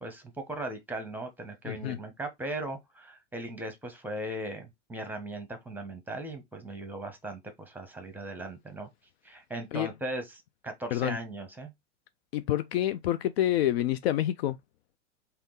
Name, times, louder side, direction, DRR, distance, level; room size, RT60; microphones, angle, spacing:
voice 1, 0.0-8.9 9.2-11.7, right 1 dB, 5° right, 1.0 m, -38 dB
voice 2, 1.6-2.0 9.7-9.9 10.9-11.2 12.3-14.6, left 13 dB, 55° left, 0.4 m, -28 dB
3.6 x 2.8 x 3.9 m
hypercardioid pair, 105°, 37 cm